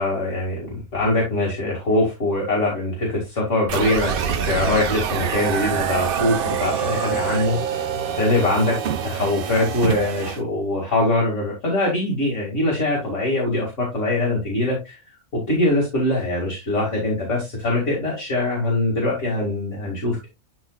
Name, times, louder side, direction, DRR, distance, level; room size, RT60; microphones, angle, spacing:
voice 1, 0.0-4.1 4.4-7.9 8.2-8.8 9.0-15.0 15.3-20.3, left 2 dB, 60° left, -3 dB, 2.5 m, -22 dB
sound 1, 3.7-10.4, right 7 dB, 50° right, 0.7 m, -26 dB
12.0 x 4.0 x 2.3 m, 0.24 s
omnidirectional pair, 1.5 m